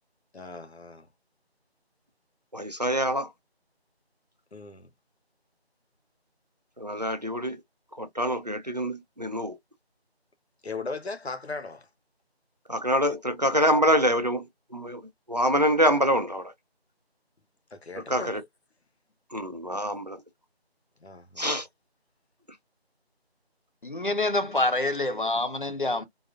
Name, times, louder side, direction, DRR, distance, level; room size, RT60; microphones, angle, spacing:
voice 1, 0.3-1.1 4.5-4.9 10.6-11.9 17.7-18.5 21.0-21.5, left 3 dB, 75° left, 0.9 m, -38 dB
voice 2, 2.5-3.3 6.8-7.6 8.0-9.6 12.7-15.0 15.3-16.5 18.0-18.4 19.3-20.2 21.4-21.7, equal, 40° right, 0.5 m, -25 dB
voice 3, 23.8-26.1, left 2 dB, 50° left, 0.7 m, -26 dB
3.9 x 2.5 x 2.4 m
figure-of-eight pair, 170°, 32 cm